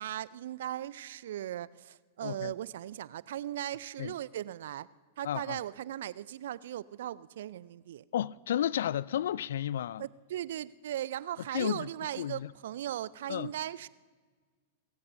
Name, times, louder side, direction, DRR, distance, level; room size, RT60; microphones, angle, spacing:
voice 1, 0.0-4.9 5.2-8.0 10.0-13.9, right 12 dB, 65° right, 0.4 m, -38 dB
voice 2, 2.2-2.5 4.0-4.1 5.2-5.6 8.1-10.0 11.5-11.9 12.2-12.5 13.3-13.5, left 11 dB, 65° left, 0.3 m, -32 dB
29.5 x 15.5 x 2.7 m
figure-of-eight pair, 100°, 0 cm